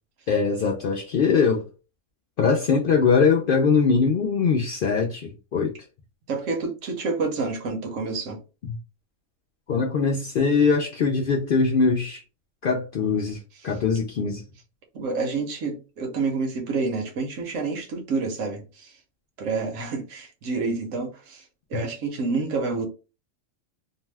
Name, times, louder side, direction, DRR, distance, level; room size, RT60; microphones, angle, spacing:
voice 1, 0.3-1.7 2.4-5.7 9.7-12.2 12.6-13.4 13.6-14.4, left 5 dB, 65° left, 0.5 m, -22 dB
voice 2, 6.3-8.4 14.9-18.9 19.4-21.4 21.7-22.9, right 4 dB, 75° right, 1.1 m, -28 dB
2.6 x 2.2 x 3.2 m
omnidirectional pair, 1.4 m